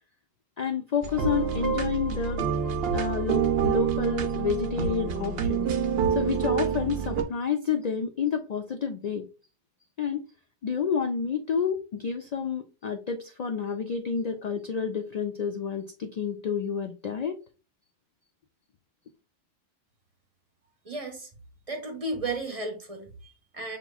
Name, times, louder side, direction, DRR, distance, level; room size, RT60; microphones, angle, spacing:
voice 1, 0.6-2.5 2.9-5.7 6.1-9.3 10.0-10.2 10.6-17.3, left 6 dB, 75° left, 0.3 m, -29 dB
sound 1, 1.0-7.2, right 6 dB, 60° right, 0.8 m, -27 dB
voice 2, 20.8-21.3 21.7-23.8, right 2 dB, 30° right, 1.0 m, -34 dB
6.9 x 3.0 x 2.2 m
omnidirectional pair, 1.3 m